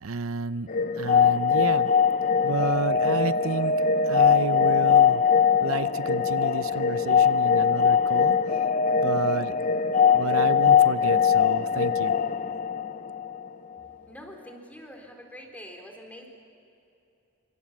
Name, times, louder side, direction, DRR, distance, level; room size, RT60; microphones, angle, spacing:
voice 1, 0.0-0.7 1.0-1.9 2.4-5.2 5.6-8.4 9.0-9.5 10.1-12.1, right 4 dB, 85° right, 14 dB, 0.7 m, -31 dB
sound 1, 0.7-13.5, left 6 dB, 40° left, 0.7 m, -22 dB
voice 2, 14.1-16.3, equal, 10° left, 2 dB, 4.0 m, -45 dB
27.0 x 26.0 x 7.4 m, 2.8 s
head